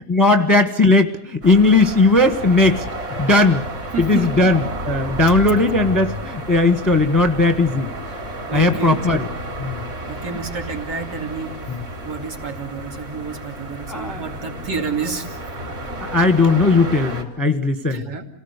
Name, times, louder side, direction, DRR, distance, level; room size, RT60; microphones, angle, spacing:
voice 1, 0.1-2.9 3.2-3.7 4.0-7.9 8.5-9.3 9.6-9.8 11.7-11.8 13.9-14.4 16.0-18.0, left 2 dB, 15° left, 8 dB, 1.1 m, -17 dB
sound 1, 1.4-17.2, right 1 dB, 35° right, 3.6 m, -31 dB
voice 2, 3.9-4.3 8.5-9.2 10.0-11.5 12.0-15.5 17.9-18.2, right 4 dB, 70° right, 3 dB, 3.1 m, -29 dB
27.5 x 18.5 x 8.1 m, 0.71 s
omnidirectional pair, 1.8 m